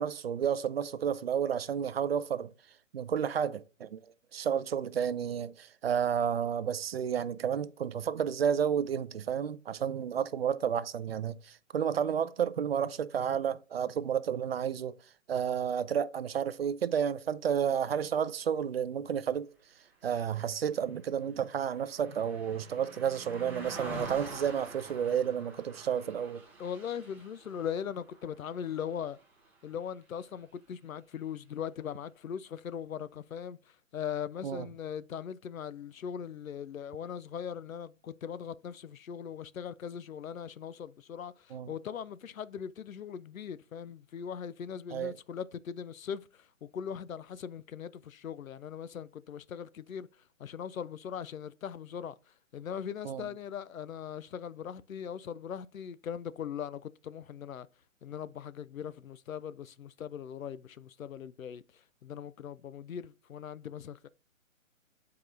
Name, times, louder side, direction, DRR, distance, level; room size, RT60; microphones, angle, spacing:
voice 1, 0.0-2.5 2.9-4.0 4.3-14.9 15.3-19.5 20.0-26.4 34.4-34.7 41.5-41.7 44.9-45.1 53.0-53.3, right 8 dB, 50° right, 0.5 m, -31 dB
Car passing by, 20.3-29.8 30.2-30.4, right 2 dB, 5° right, 1.0 m, -47 dB
voice 2, 26.6-29.2 29.6-50.1 50.4-52.1 52.5-57.7 58.0-64.1, left 8 dB, 85° left, 0.6 m, -40 dB
8.1 x 4.8 x 2.5 m
figure-of-eight pair, 140°, 40 cm